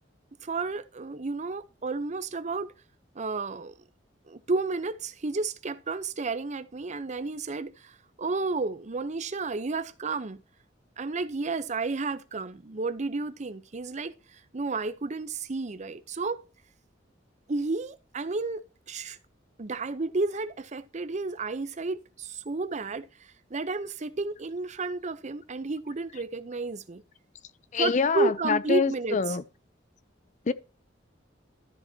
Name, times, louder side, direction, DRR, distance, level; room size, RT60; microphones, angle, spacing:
voice 1, 0.4-2.7 3.2-3.7 4.3-10.4 11.0-14.1 14.5-16.4 17.5-19.2 19.6-23.1 23.5-27.0 27.8-29.2, right 3 dB, 40° right, 0.7 m, -31 dB
voice 2, 27.7-29.4 30.5-30.6, left 5 dB, 40° left, 0.5 m, -26 dB
13.0 x 7.2 x 2.7 m
head